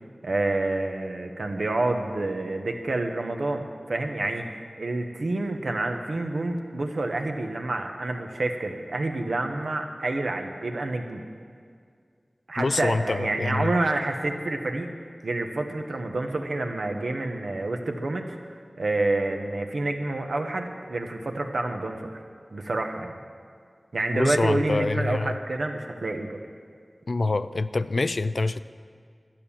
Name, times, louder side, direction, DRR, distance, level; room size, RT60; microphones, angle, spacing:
voice 1, 0.2-11.2 12.5-14.9 15.2-18.4 18.8-22.2 22.5-23.2 23.9-26.4, right 2 dB, 85° right, 3 dB, 1.1 m, -28 dB
voice 2, 12.6-13.7 24.1-25.4 27.1-28.6, left 3 dB, 75° left, 13 dB, 0.4 m, -26 dB
12.0 x 8.7 x 7.2 m, 2.1 s
wide cardioid pair, 45°, 0 cm